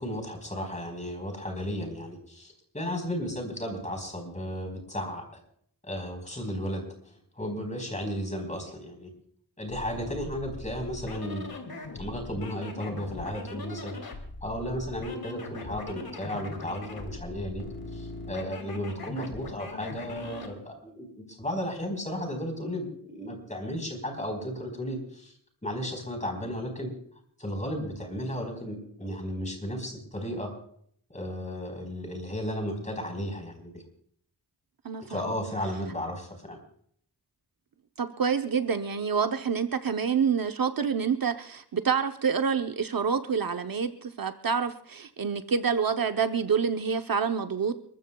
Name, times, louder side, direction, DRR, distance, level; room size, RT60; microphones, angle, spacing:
voice 1, 0.0-5.2 5.8-9.1 9.6-11.5 11.9-13.9 14.4-17.6 17.9-25.3 25.6-26.9 27.4-30.5 31.1-33.8 35.0-36.6, equal, 20° left, 3 dB, 4.4 m, -34 dB
sound 1, 9.7-20.5, left 3 dB, 65° left, 2.9 m, -41 dB
voice 2, 34.8-35.2 38.0-47.8, right 6 dB, 60° right, 7 dB, 0.9 m, -27 dB
30.0 x 14.0 x 2.3 m, 0.62 s
wide cardioid pair, 100°, 39 cm